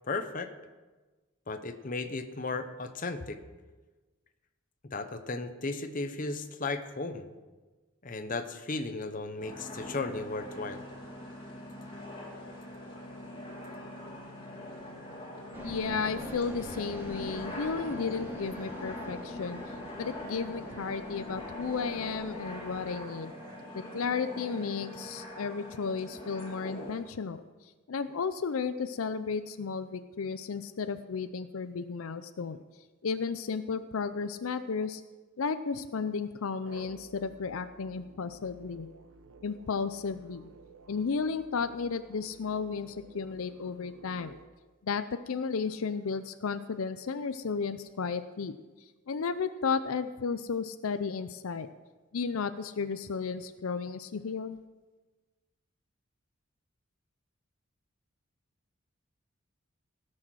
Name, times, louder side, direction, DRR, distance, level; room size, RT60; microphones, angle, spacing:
voice 1, 0.0-0.5 1.5-3.4 4.9-7.3 8.0-10.8, left 3 dB, 40° left, 8 dB, 0.8 m, -35 dB
sound 1, 9.4-27.0, left 1 dB, 25° left, 2.4 m, -44 dB
sound 2, 15.5-22.9, left 1 dB, 10° right, 1.8 m, -42 dB
voice 2, 15.6-19.6 20.0-23.3 23.7-27.4 27.9-32.6 33.0-35.0 35.4-38.9 39.4-40.5 40.9-44.4 44.8-48.5 49.1-51.7 52.1-54.6, left 5 dB, 80° left, 11 dB, 0.5 m, -33 dB
sound 3, 36.6-44.5, right 4 dB, 85° right, 0.8 m, -54 dB
17.5 x 6.4 x 6.2 m, 1.2 s
head